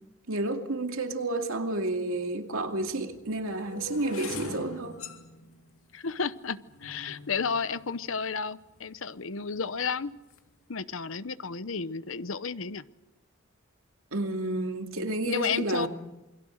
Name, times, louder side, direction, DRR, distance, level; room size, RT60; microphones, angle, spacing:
voice 1, 0.3-5.0 14.1-15.9, right 2 dB, 90° right, 4 dB, 2.5 m, -30 dB
sound 1, 1.9-2.0 2.7-8.9 9.5-9.9 10.1-10.5, left 2 dB, 90° left, 2.6 m, -43 dB
voice 2, 5.9-10.1 10.7-12.8 15.3-15.9, left 5 dB, 70° left, 15 dB, 0.9 m, -32 dB
28.5 x 22.5 x 6.5 m, 1.0 s
head